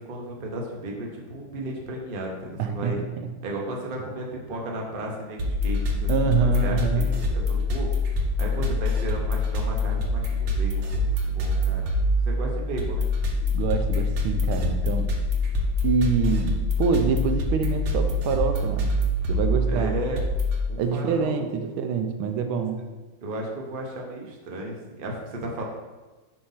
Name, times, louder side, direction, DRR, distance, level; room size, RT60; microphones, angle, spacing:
voice 1, 0.0-3.0 3.4-7.9 8.4-11.8 12.2-13.1 19.7-20.2 20.7-21.3 21.6-21.7 23.2-25.6, right 1 dB, 40° right, -1 dB, 0.8 m, -34 dB
voice 2, 2.6-3.3 6.1-7.1 13.4-15.1 15.8-19.0 19.3-19.9 20.8-22.8, right 5 dB, 85° right, 6 dB, 1.5 m, -26 dB
sound 1, 5.4-20.6, left 2 dB, 65° right, 1.5 m, -25 dB
7.5 x 2.9 x 5.6 m, 1.2 s
omnidirectional pair, 2.3 m